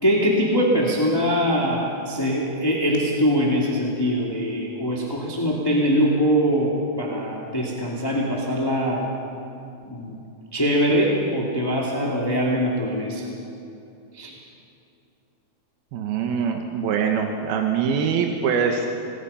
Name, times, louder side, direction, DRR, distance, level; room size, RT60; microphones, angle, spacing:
voice 1, 0.0-6.7 7.0-9.1 9.8-10.2 10.5-13.3 14.1-14.3, equal, 10° left, -4 dB, 1.8 m, -22 dB
voice 2, 15.9-18.9, right 6 dB, 85° right, 3 dB, 3.1 m, -23 dB
26.5 x 20.0 x 5.7 m, 2.7 s
omnidirectional pair, 4.3 m